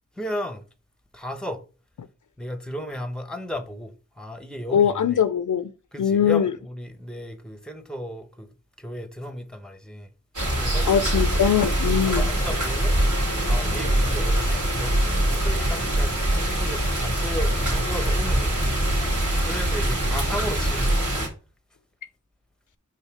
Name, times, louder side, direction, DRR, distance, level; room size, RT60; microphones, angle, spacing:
voice 1, 0.2-0.6 1.1-1.6 2.4-5.2 5.9-8.5 8.8-10.1 10.5-10.9 11.8-13.0 13.5-18.6 19.4-21.0, equal, ahead, 0.9 m, -34 dB
voice 2, 4.7-5.7 6.0-6.5 10.9-12.3, left 8 dB, 75° left, 0.5 m, -21 dB
sound 1, 10.3-21.3, right 1 dB, 75° right, 2.9 m, -23 dB
5.6 x 3.9 x 5.8 m
wide cardioid pair, 80°, 30 cm